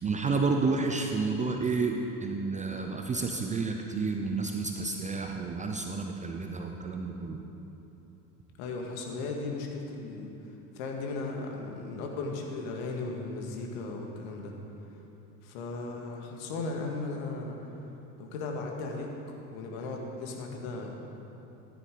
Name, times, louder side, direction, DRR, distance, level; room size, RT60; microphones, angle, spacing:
voice 1, 0.0-7.4, right 4 dB, 15° right, 3 dB, 0.5 m, -30 dB
voice 2, 8.6-10.3 10.8-14.5 15.4-17.7 18.2-19.1 19.5-20.9, left 3 dB, 55° left, 1 dB, 1.9 m, -36 dB
14.0 x 10.0 x 3.8 m, 3.0 s
hypercardioid pair, 80°, 49 cm